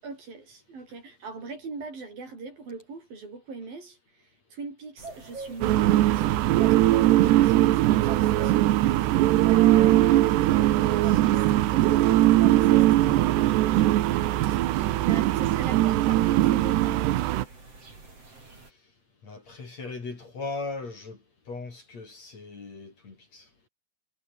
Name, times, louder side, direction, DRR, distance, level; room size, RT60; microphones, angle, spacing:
voice 1, 0.0-9.1 9.5-17.4, right 4 dB, 55° right, 9.0 m, -42 dB
sound 1, 5.0-18.7, right 3 dB, 35° right, 7.6 m, -46 dB
sound 2, 5.6-17.4, right 15 dB, 80° right, 3.4 m, -21 dB
voice 2, 19.2-21.2 21.5-23.5, left 3 dB, 40° left, 5.3 m, -38 dB
omnidirectional pair, 4.9 m